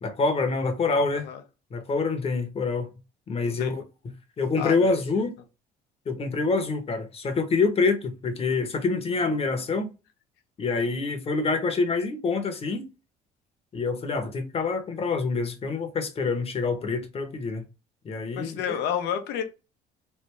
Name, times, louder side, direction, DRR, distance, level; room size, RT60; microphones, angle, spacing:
voice 1, 0.0-1.3 1.7-2.9 3.3-3.8 4.4-5.4 6.1-9.9 10.6-12.9 13.7-17.6 18.0-18.8, left 4 dB, 35° left, 0.9 m, -26 dB
voice 2, 3.4-3.7 4.6-4.9 18.4-19.4, left 8 dB, 85° left, 0.8 m, -30 dB
3.3 x 2.6 x 3.2 m
cardioid pair, 110°, 17 cm